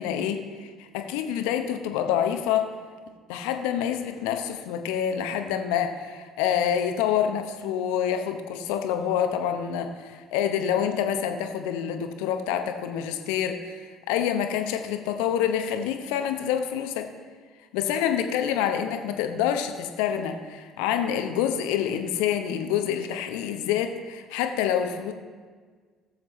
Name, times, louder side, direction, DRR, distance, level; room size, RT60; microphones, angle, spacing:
voice 1, 0.0-2.7 3.3-17.1 17.7-25.1, left 9 dB, 70° left, 6 dB, 0.8 m, -27 dB
17.0 x 7.6 x 3.1 m, 1.5 s
figure-of-eight pair, 55°, 0 cm